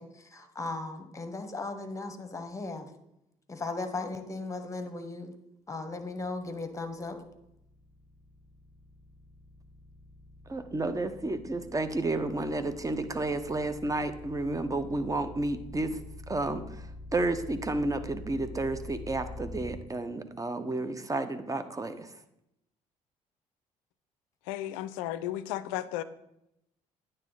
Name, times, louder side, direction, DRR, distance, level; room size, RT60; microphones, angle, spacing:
voice 1, 0.0-2.9 3.5-5.3 5.7-7.2, left 3 dB, 20° left, 8 dB, 1.1 m, -37 dB
sound 1, 7.2-19.8, left 2 dB, ahead, 1.1 m, -46 dB
voice 2, 10.5-16.0 16.3-16.8 17.1-22.1, right 2 dB, 20° right, 10 dB, 0.8 m, -31 dB
voice 3, 24.5-26.0, left 13 dB, 70° left, 14 dB, 0.4 m, -34 dB
9.2 x 3.3 x 5.6 m, 0.83 s
figure-of-eight pair, 45°, 17 cm